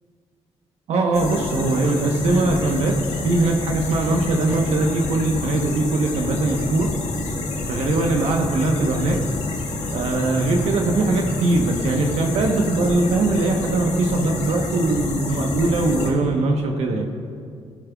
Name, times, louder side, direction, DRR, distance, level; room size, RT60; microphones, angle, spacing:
voice 1, 0.9-3.0 3.2-6.9 7.7-9.2 9.9-17.1, right 2 dB, 75° right, 2 dB, 1.1 m, -21 dB
sound 1, 1.1-16.1, left 3 dB, 80° left, 1.7 m, -28 dB
15.0 x 9.7 x 2.4 m, 2.2 s
cardioid pair, 100°, 11 cm